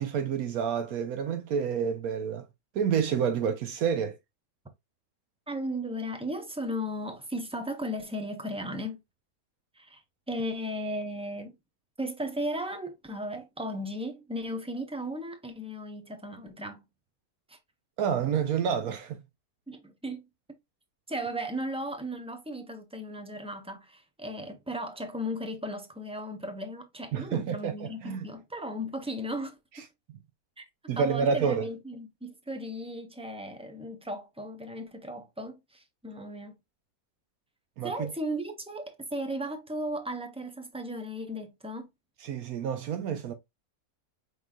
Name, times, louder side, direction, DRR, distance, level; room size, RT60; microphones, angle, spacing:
voice 1, 0.0-2.5 2.7-4.2 18.0-19.2 27.1-28.3 30.9-31.7 37.8-38.1 42.2-43.3, right 7 dB, 75° right, 1.1 m, -29 dB
voice 2, 5.5-9.0 9.8-10.0 10.3-11.6 12.0-16.8 17.5-17.6 19.7-20.3 21.1-29.6 30.6-30.7 31.0-36.6 37.8-41.9, equal, 10° right, 0.4 m, -36 dB
5.2 x 3.8 x 2.3 m
omnidirectional pair, 1.6 m